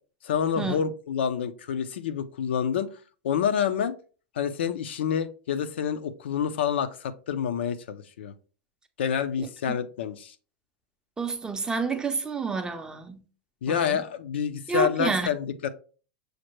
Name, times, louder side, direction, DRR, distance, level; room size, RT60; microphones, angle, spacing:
voice 1, 0.2-3.0 3.2-3.9 4.3-8.3 9.0-10.3 13.6-15.7, left 8 dB, 85° left, 0.4 m, -28 dB
voice 2, 9.4-9.8 11.2-13.2 13.7-14.0 14.7-15.3, right 4 dB, 15° right, 0.5 m, -29 dB
6.3 x 2.1 x 3.0 m
supercardioid pair, 125°, 6 cm